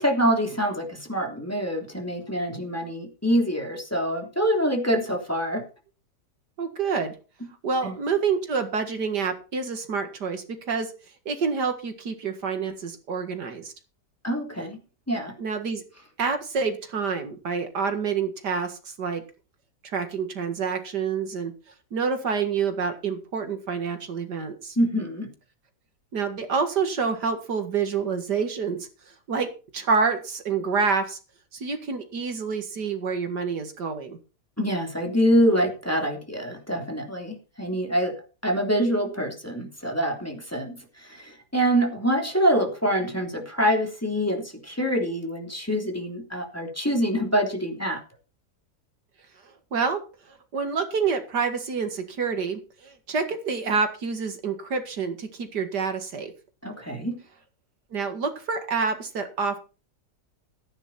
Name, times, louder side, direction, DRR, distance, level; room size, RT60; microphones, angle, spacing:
voice 1, 0.0-5.7 7.8-8.0 14.2-14.8 15.1-15.3 24.8-25.3 34.6-38.2 38.4-48.0 56.6-57.2, equal, 10° left, 1 dB, 3.1 m, -25 dB
voice 2, 6.6-7.1 7.6-10.9 11.3-13.7 15.4-15.8 16.2-19.2 19.9-21.5 21.9-24.8 26.1-28.9 29.3-31.2 31.5-34.2 49.7-50.0 50.3-56.3 57.9-59.6, right 5 dB, 75° right, 7 dB, 2.5 m, -27 dB
14.5 x 10.0 x 4.3 m, 0.33 s
omnidirectional pair, 1.8 m